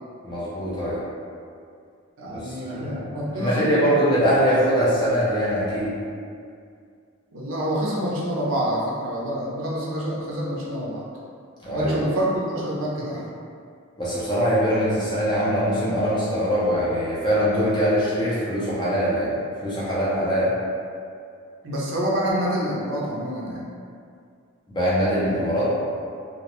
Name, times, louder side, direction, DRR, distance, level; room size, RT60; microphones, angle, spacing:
voice 1, 0.2-1.0 2.3-3.1 3.4-5.9 11.6-12.1 14.0-19.4 19.6-20.5 24.7-25.7, equal, 20° left, -9 dB, 0.5 m, -22 dB
voice 2, 2.2-4.0 7.3-11.0 11.7-13.3 21.6-23.7, equal, 65° right, -5 dB, 0.5 m, -27 dB
2.4 x 2.1 x 2.9 m, 2.3 s
head